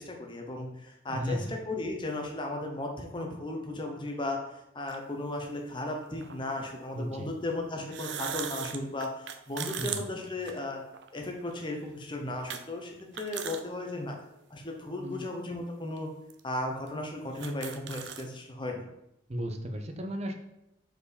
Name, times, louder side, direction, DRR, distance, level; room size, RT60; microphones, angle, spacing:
voice 1, 0.0-4.4 4.7-10.8 11.1-14.2 14.5-16.1 16.4-18.8, left 2 dB, 25° left, 2 dB, 1.0 m, -35 dB
voice 2, 1.1-1.5 6.9-7.3 9.8-10.0 15.0-15.2 19.3-20.3, equal, 35° right, 5 dB, 0.7 m, -35 dB
sound 1, 4.9-5.0 6.2-6.3 7.8-11.1 11.5-11.6 12.5-12.6 13.0-13.6 14.1-14.2 15.0-15.2 16.0-16.1 16.3-16.4 16.9-17.0 17.2-18.3, right 8 dB, 70° right, 0.5 m, -38 dB
4.6 x 4.6 x 5.2 m, 0.85 s
head